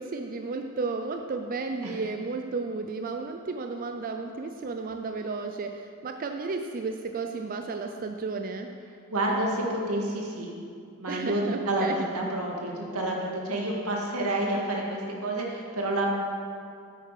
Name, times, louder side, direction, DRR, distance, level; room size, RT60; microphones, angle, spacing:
voice 1, 0.0-8.7 11.1-12.1, right 4 dB, 40° right, 5 dB, 0.4 m, -33 dB
voice 2, 9.1-10.5 11.0-16.1, right 1 dB, 90° right, -1 dB, 1.8 m, -29 dB
8.9 x 8.7 x 4.8 m, 2.3 s
head